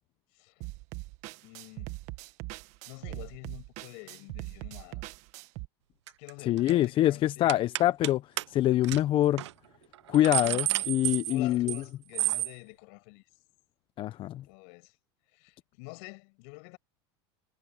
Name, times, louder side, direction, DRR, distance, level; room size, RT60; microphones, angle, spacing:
sound 1, 0.6-5.7, right 20 dB, 55° right, 1.7 m, -41 dB
voice 1, 1.4-1.9 2.8-5.1 6.2-7.6 10.3-13.2 14.4-15.0 15.3-16.8, left 33 dB, 65° left, 6.3 m, -48 dB
sound 2, 6.1-6.3 6.6-6.8 7.5-8.1 8.4-8.5 8.8-9.0 9.4-9.5 9.9-11.8 12.1-12.5, right 14 dB, 85° right, 0.8 m, -30 dB
voice 2, 6.5-8.2 8.5-9.4 10.1-11.8 14.0-14.4, left 13 dB, 40° left, 0.7 m, -25 dB
supercardioid pair, 120°, 14 cm